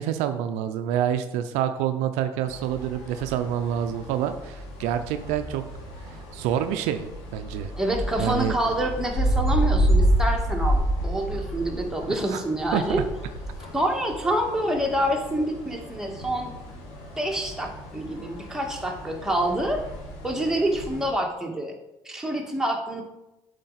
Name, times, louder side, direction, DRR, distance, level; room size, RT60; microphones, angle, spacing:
voice 1, 0.0-5.6 6.1-7.1 7.3-7.7 8.2-8.6 12.0-12.4 12.7-12.8, right 10 dB, 80° right, 9 dB, 0.5 m, -27 dB
sound 1, 2.5-21.1, right 1 dB, 80° left, 2.0 m, -30 dB
voice 2, 7.8-13.0 13.7-16.6 17.2-19.8 20.2-21.7 22.1-23.0, right 1 dB, 5° right, 0 dB, 1.7 m, -27 dB
7.5 x 5.2 x 4.0 m, 0.97 s
hypercardioid pair, 65°, 12 cm